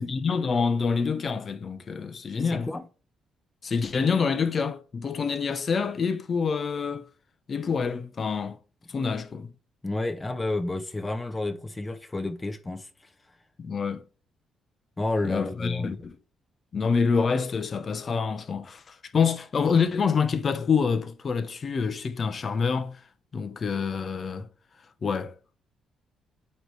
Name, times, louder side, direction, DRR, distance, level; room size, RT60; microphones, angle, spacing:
voice 1, 0.0-2.7 3.6-7.1 7.5-8.6 8.9-9.5 13.6-14.0 15.2-16.2 16.7-23.0 23.3-24.5 25.0-25.3, left 5 dB, 45° left, 0.9 m, -27 dB
voice 2, 2.5-2.8 9.8-12.9 15.0-16.0, left 2 dB, 20° left, 1.0 m, -30 dB
8.6 x 3.2 x 3.4 m
cardioid pair, 90°, 0 cm